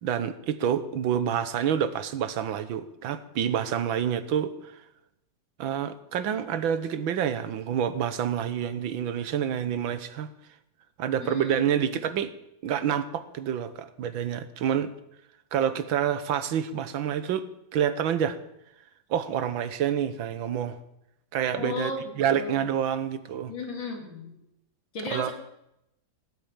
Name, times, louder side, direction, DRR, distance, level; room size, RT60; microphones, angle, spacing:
voice 1, 0.0-4.7 5.6-10.3 11.0-12.3 12.6-14.9 15.5-17.5 17.7-18.4 19.1-20.8 21.3-21.9 22.2-23.5 25.1-25.3, right 9 dB, 80° right, 12 dB, 1.8 m, -28 dB
voice 2, 11.2-11.7 21.5-22.7 23.5-24.3 24.9-25.3, left 3 dB, 70° left, 2 dB, 3.6 m, -35 dB
17.0 x 8.6 x 8.8 m, 0.83 s
omnidirectional pair, 2.1 m